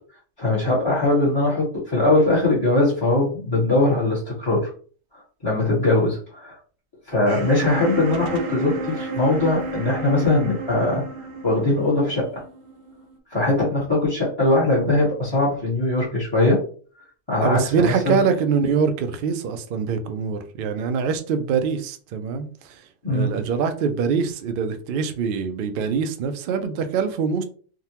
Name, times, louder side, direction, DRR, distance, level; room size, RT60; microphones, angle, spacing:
voice 1, 0.4-4.7 5.4-6.6 7.1-11.0 11.4-12.4 13.3-16.6 17.3-18.2 23.0-23.4, left 2 dB, 20° left, -8 dB, 1.1 m, -21 dB
sound 1, 7.3-13.2, right 3 dB, 80° right, 1.0 m, -32 dB
voice 2, 17.4-22.8 23.1-27.4, right 6 dB, 65° right, 8 dB, 0.5 m, -24 dB
3.7 x 2.1 x 2.8 m, 0.42 s
omnidirectional pair, 1.3 m